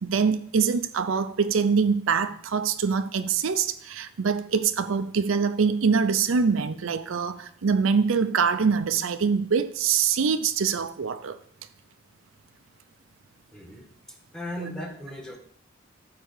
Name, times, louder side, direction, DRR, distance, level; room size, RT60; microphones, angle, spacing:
voice 1, 0.0-11.4, right 5 dB, 85° right, 0.5 m, -24 dB
voice 2, 13.5-15.4, equal, 5° left, 1.4 m, -38 dB
9.2 x 3.7 x 6.5 m
head